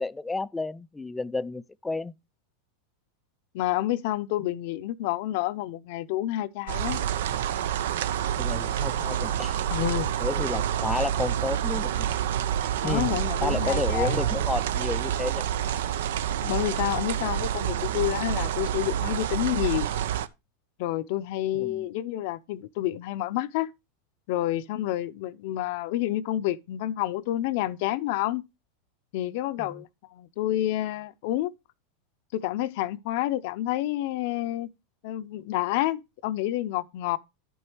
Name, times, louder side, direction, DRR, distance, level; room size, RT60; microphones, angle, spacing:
voice 1, 0.0-2.1 8.4-9.6 10.2-12.1 12.8-13.1 13.4-15.4 21.5-21.9 29.6-29.8, left 3 dB, 10° left, 0.4 m, -31 dB
voice 2, 3.5-7.0 9.7-10.1 12.8-14.3 16.4-19.9 20.8-23.7 24.3-28.4 29.1-31.5 32.3-34.7 35.0-37.2, left 14 dB, 60° left, 0.6 m, -29 dB
sound 1, 6.7-20.3, right 10 dB, 75° right, 0.6 m, -28 dB
11.0 x 5.4 x 4.5 m
hypercardioid pair, 115°, 0 cm